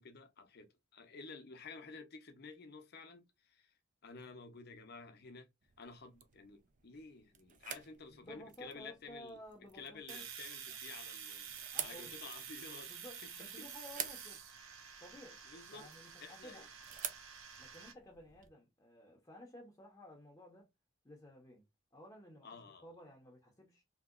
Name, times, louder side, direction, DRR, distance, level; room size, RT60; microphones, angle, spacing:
voice 1, 0.0-3.7 4.0-5.5 5.8-9.4 9.7-12.9 13.2-13.3 13.6-13.7 15.5-16.7 22.4-22.9, left 4 dB, 55° left, 0.6 m, -52 dB
sound 1, 5.6-18.5, right 9 dB, 40° right, 0.4 m, -50 dB
voice 2, 8.2-10.2 11.7-12.2 12.9-14.4 15.0-15.4 15.7-16.7 17.6-20.7 21.0-21.6 21.9-23.8, equal, 15° left, 0.7 m, -54 dB
Domestic sounds home sounds, 10.1-17.9, right 7 dB, 85° right, 0.7 m, -49 dB
2.9 x 2.8 x 2.4 m
head